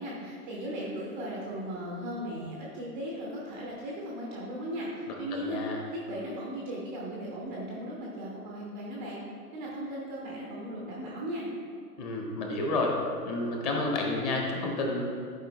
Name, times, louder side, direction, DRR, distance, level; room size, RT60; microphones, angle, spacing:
voice 1, 0.0-5.6 5.9-9.2 9.5-11.5, equal, 10° right, -4 dB, 0.4 m, -37 dB
voice 2, 5.1-5.8 12.0-13.0 13.2-15.0, left 2 dB, 25° left, 0 dB, 1.1 m, -30 dB
10.5 x 4.7 x 3.1 m, 2.2 s
figure-of-eight pair, 125°, 47 cm